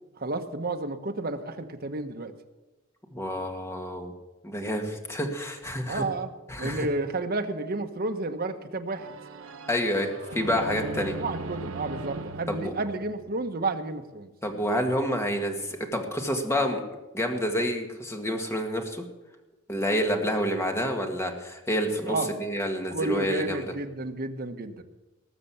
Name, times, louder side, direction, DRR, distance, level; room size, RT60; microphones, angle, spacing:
voice 1, 0.2-2.3 5.9-6.3 6.6-9.1 10.8-14.3 22.0-22.3 22.9-24.8, right 2 dB, 50° right, 6 dB, 1.2 m, -31 dB
voice 2, 3.1-4.1 4.4-6.0 6.5-6.9 9.7-11.1 12.5-12.7 14.4-16.8 17.1-19.0 19.7-23.7, equal, 15° left, 3 dB, 1.8 m, -28 dB
sound 1, 8.9-13.7, right 3 dB, 85° right, 0.8 m, -39 dB
19.5 x 6.7 x 7.2 m, 1.1 s
head